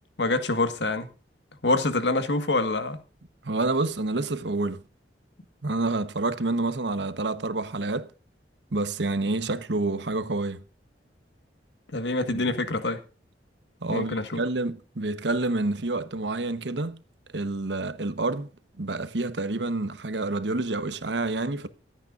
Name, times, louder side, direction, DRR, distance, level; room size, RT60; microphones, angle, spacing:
voice 1, 0.2-1.1 1.6-3.0 11.9-13.0 13.9-14.4, left 2 dB, 85° left, 1.6 m, -26 dB
voice 2, 3.4-4.8 5.6-8.1 8.7-10.6 12.3-12.6 13.8-17.0 17.3-18.5 18.8-21.7, right 2 dB, 85° right, 1.1 m, -28 dB
24.5 x 9.0 x 2.5 m
head